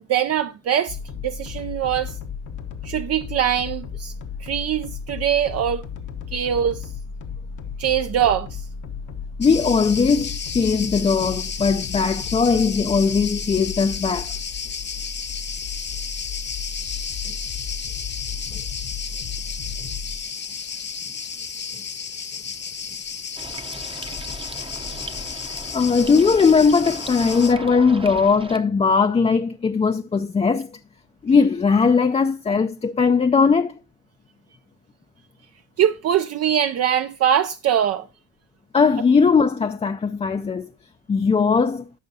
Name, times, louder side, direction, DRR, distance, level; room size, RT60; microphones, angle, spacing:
voice 1, 0.1-1.0 1.2-2.1 2.8-4.1 4.4-5.8 6.3-6.9 7.8-8.6 35.8-38.0, right 9 dB, 55° right, 0.5 m, -22 dB
sound 1, 0.9-20.2, left 6 dB, 80° left, 1.2 m, -34 dB
Cricket, 9.4-27.5, left 6 dB, 35° left, 0.9 m, -32 dB
voice 2, 9.4-14.3 17.3-17.4 18.5-18.6 25.7-30.7 31.2-33.8 38.7-40.7 41.1-41.8, left 5 dB, 20° left, 0.4 m, -19 dB
sound 2, 23.4-28.6, right 3 dB, 20° right, 0.7 m, -37 dB
14.0 x 5.7 x 2.7 m
cardioid pair, 90°, 30 cm